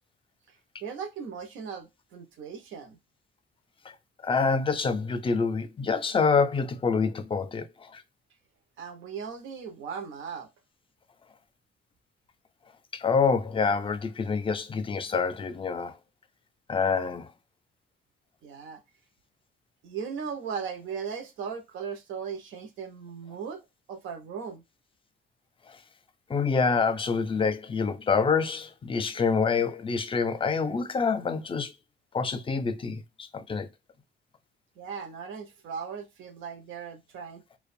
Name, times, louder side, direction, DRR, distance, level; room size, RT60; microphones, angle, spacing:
voice 1, 0.8-3.0 8.8-10.5 18.4-18.8 19.8-23.6 23.9-24.6 34.8-37.4, right 6 dB, 80° right, 0.6 m, -37 dB
voice 2, 4.2-7.6 7.9-8.0 12.9-15.9 16.7-17.3 26.3-31.7 32.1-33.7, left 5 dB, 25° left, 0.4 m, -26 dB
2.5 x 2.1 x 2.5 m
cardioid pair, 90°, 20 cm